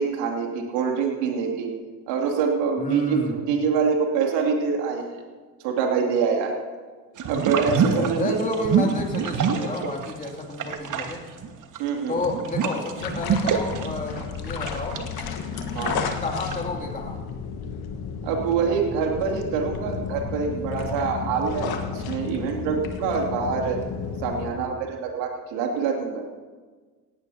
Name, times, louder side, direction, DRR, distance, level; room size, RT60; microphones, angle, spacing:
voice 1, 0.0-1.7 2.1-5.0 5.6-6.6 7.3-8.4 11.8-12.2 15.7-16.1 18.2-23.8 24.2-26.2, right 6 dB, 60° right, 2 dB, 2.6 m, -25 dB
voice 2, 2.8-3.3 7.6-11.2 12.1-15.0 16.2-17.2, left 2 dB, 15° left, 0 dB, 2.6 m, -30 dB
sound 1, 7.2-10.3 10.5-16.5, right 6 dB, 40° right, 1.6 m, -26 dB
sound 2, 13.0-24.5, left 6 dB, 50° left, 1.6 m, -32 dB
18.0 x 17.5 x 2.8 m, 1.4 s
hypercardioid pair, 65°, 48 cm